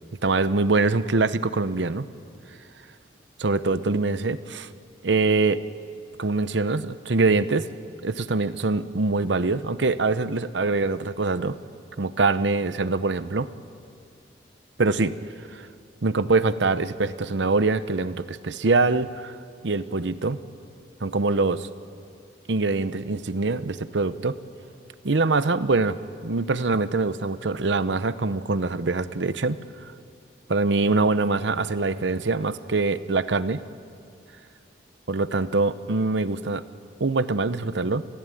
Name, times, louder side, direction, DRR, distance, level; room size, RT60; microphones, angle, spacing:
voice 1, 0.2-2.1 3.4-4.7 5.0-5.6 6.2-7.7 8.0-11.6 12.0-13.5 14.8-15.1 15.5-15.7 16.0-19.4 19.6-20.4 21.0-21.7 22.5-24.4 25.0-29.9 30.5-33.6 35.1-36.6 37.0-38.0, right 3 dB, 75° right, 14 dB, 0.8 m, -24 dB
30.0 x 16.0 x 9.1 m, 2.4 s
head